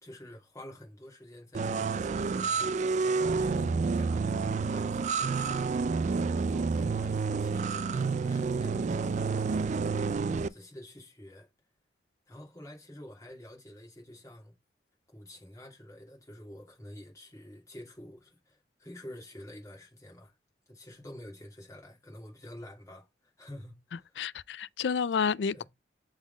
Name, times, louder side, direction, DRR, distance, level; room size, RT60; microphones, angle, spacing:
voice 1, 0.0-2.7 3.2-5.8 6.5-9.8 10.5-11.5 12.3-14.6 15.1-20.4 20.7-24.2 25.5-25.6, left 1 dB, 20° left, 2.8 m, -49 dB
sound 1, 1.5-10.5, right 4 dB, 40° right, 0.3 m, -29 dB
voice 2, 24.2-25.6, left 6 dB, 80° left, 0.4 m, -30 dB
7.1 x 4.0 x 3.9 m
head